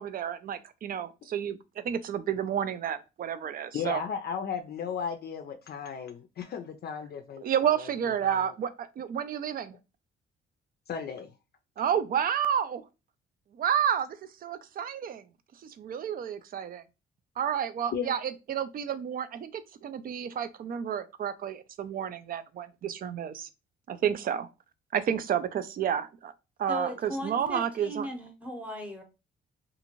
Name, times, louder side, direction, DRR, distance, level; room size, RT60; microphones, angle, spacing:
voice 1, 0.0-4.0 7.4-9.8 11.8-12.9 13.5-15.2 15.6-16.8 17.4-23.5 23.9-24.5 24.9-26.3 26.6-28.1, right 9 dB, 45° right, 0.4 m, -30 dB
voice 2, 3.7-7.4 7.8-7.9 8.2-8.5 10.9-11.3 17.9-18.2, left 7 dB, 55° left, 0.4 m, -35 dB
voice 3, 26.7-29.0, equal, 5° right, 0.8 m, -37 dB
2.5 x 2.5 x 2.9 m
cardioid pair, 90°, 20 cm